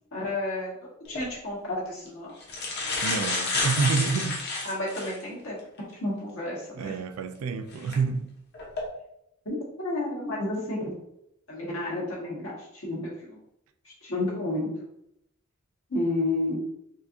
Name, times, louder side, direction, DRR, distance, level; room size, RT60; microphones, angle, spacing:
voice 1, 0.1-0.7 1.1-2.3 4.6-5.6 6.0-7.0 9.4-10.9 11.5-13.4 13.8-14.7 15.9-16.6, left 2 dB, 75° left, 1.4 m, -31 dB
sound 1, 1.0-1.2 2.1-2.2 2.4-5.2 5.8-5.9 7.7-7.9 8.5-8.8, left 3 dB, 55° left, 0.9 m, -29 dB
voice 2, 3.0-4.4 6.8-8.3, right 5 dB, 85° right, 0.3 m, -28 dB
4.5 x 2.5 x 2.7 m
head